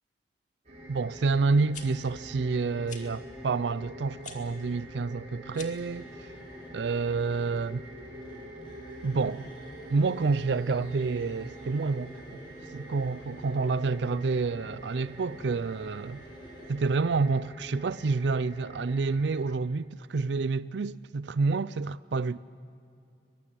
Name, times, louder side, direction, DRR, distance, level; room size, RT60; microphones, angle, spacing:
sound 1, 0.6-19.3, equal, 40° right, 5.9 m, -46 dB
voice 1, 0.9-6.1 6.7-7.9 9.0-9.5 9.9-12.4 12.7-16.2 16.7-22.4, right 4 dB, 75° right, 0.5 m, -28 dB
sound 2, 1.5-1.8 2.8-3.0 4.2-4.4 5.5-5.9, left 7 dB, 45° left, 2.2 m, -44 dB
sound 3, 5.8-16.7, right 1 dB, 30° left, 6.5 m, -52 dB
22.5 x 22.5 x 7.6 m
head